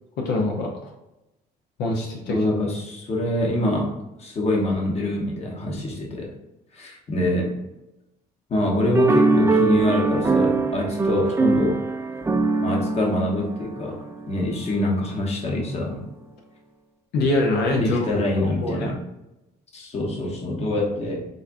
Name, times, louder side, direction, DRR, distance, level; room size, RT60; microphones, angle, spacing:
voice 1, 0.2-0.9 1.8-2.4 17.1-18.1 18.4-18.9, left 2 dB, 75° left, 0 dB, 0.7 m, -24 dB
voice 2, 2.3-6.3 6.7-7.6 8.5-11.8 12.6-16.0 17.8-19.0 19.7-21.3, left 1 dB, 40° left, -1 dB, 1.0 m, -25 dB
sound 1, 8.9-14.5, right 3 dB, 15° right, 0.4 m, -22 dB
4.0 x 3.5 x 2.5 m, 0.94 s
cardioid pair, 110°, 17 cm